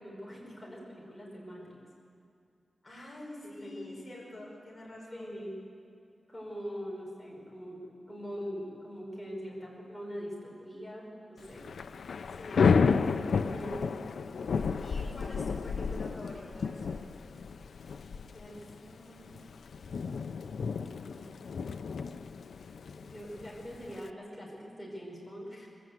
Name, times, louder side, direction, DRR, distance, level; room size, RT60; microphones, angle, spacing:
voice 1, 0.0-1.8 3.4-4.0 5.1-5.6 6.3-11.6 12.3-12.4 13.3-13.8 18.3-19.4 21.0-21.3 22.8-25.7, equal, ahead, -3 dB, 4.9 m, -43 dB
voice 2, 2.8-5.4 12.3-13.5 14.8-17.1, left 1 dB, 20° left, -5 dB, 5.5 m, -47 dB
Thunder / Rain, 11.4-24.1, left 5 dB, 90° left, 0.6 m, -32 dB
21.0 x 15.5 x 8.0 m, 2.5 s
wide cardioid pair, 180°, 0 cm